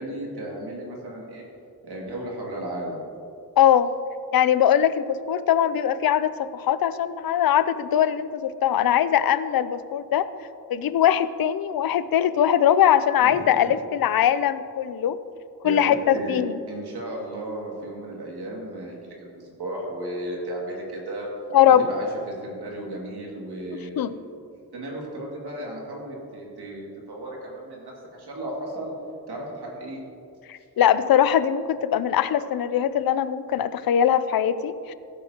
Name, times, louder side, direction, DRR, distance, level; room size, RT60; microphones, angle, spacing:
voice 1, 0.0-1.4 1.8-3.0 13.2-13.6 15.6-15.8 16.1-16.4 16.7-21.3 21.9-24.0 24.7-28.9 29.3-30.0, right 1 dB, 85° right, -2 dB, 2.3 m, -35 dB
voice 2, 3.6-3.9 4.3-10.3 10.7-15.2 15.6-16.6 21.5-21.9 24.0-24.2 30.5-34.9, left 10 dB, 70° left, 14 dB, 0.5 m, -21 dB
15.5 x 8.5 x 2.9 m, 2.6 s
wide cardioid pair, 105°, 38 cm